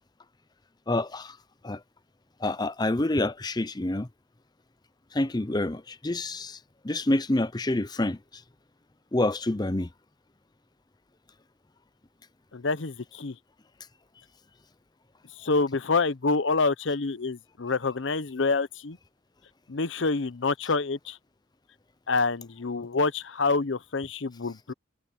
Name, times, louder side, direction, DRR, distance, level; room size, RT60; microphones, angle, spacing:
voice 1, 0.9-1.4 1.6-1.8 2.4-4.1 5.1-6.6 6.8-8.4 9.1-9.9, left 2 dB, 20° left, 0.7 m, -27 dB
voice 2, 12.5-13.4 15.4-19.0 19.7-21.2 22.1-24.7, left 3 dB, 65° left, 0.7 m, -27 dB
head